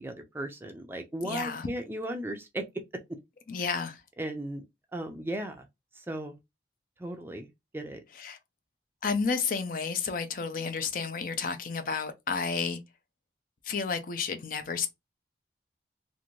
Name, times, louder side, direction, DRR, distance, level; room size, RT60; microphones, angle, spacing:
voice 1, 0.0-2.6 3.6-3.7 4.2-4.6 4.9-5.6 5.9-6.4 7.0-8.0, right 1 dB, 10° right, 0.4 m, -36 dB
voice 2, 1.2-1.7 3.5-4.0 8.2-8.4 9.0-12.8 13.6-14.9, left 5 dB, 45° left, 0.4 m, -31 dB
2.5 x 2.5 x 3.0 m
head